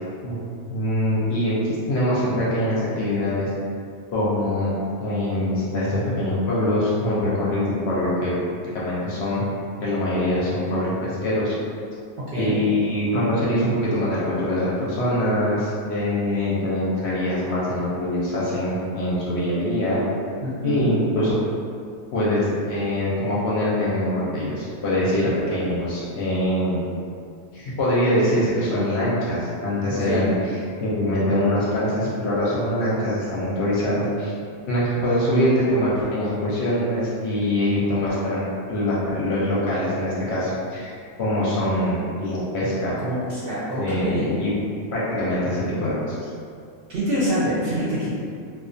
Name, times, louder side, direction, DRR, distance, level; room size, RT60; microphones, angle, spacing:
voice 1, 0.7-3.5 4.1-4.7 5.0-8.3 8.7-9.5 9.8-11.6 12.4-20.0 20.6-21.3 22.1-26.8 27.5-34.3 34.7-38.4 38.7-40.9 41.2-43.0 43.8-44.5 44.9-46.3, left 1 dB, 65° left, -7 dB, 0.7 m, -23 dB
voice 2, 12.3-12.6 20.4-20.9 29.9-30.2 43.0-44.3 46.9-48.1, equal, 60° right, -9 dB, 0.6 m, -25 dB
2.3 x 2.2 x 2.5 m, 2.3 s
omnidirectional pair, 1.4 m